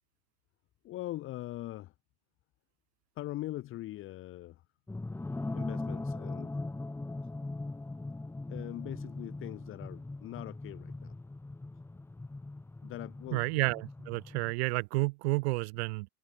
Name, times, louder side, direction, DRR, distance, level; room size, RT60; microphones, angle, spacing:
voice 1, 0.8-1.9 3.2-4.6 5.5-6.5 8.5-11.2 12.8-13.5, left 15 dB, 30° left, 2.1 m, -41 dB
sound 1, 4.9-14.5, left 2 dB, 5° left, 2.9 m, -40 dB
voice 2, 13.3-16.1, right 25 dB, 50° right, 2.7 m, -31 dB
hypercardioid pair, 125°, 42 cm